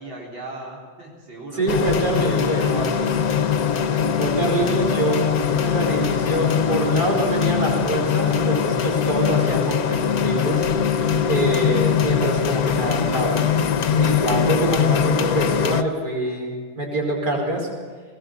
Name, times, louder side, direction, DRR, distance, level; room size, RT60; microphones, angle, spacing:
voice 1, 0.0-2.0 2.5-3.1, right 1 dB, 90° right, -4 dB, 4.7 m, -37 dB
voice 2, 1.5-2.9 4.2-13.4 14.0-17.7, right 1 dB, 55° right, -1 dB, 5.8 m, -25 dB
sound 1, 1.7-15.8, left 7 dB, 55° left, 1.2 m, -21 dB
20.5 x 20.0 x 7.2 m, 1.4 s
omnidirectional pair, 2.1 m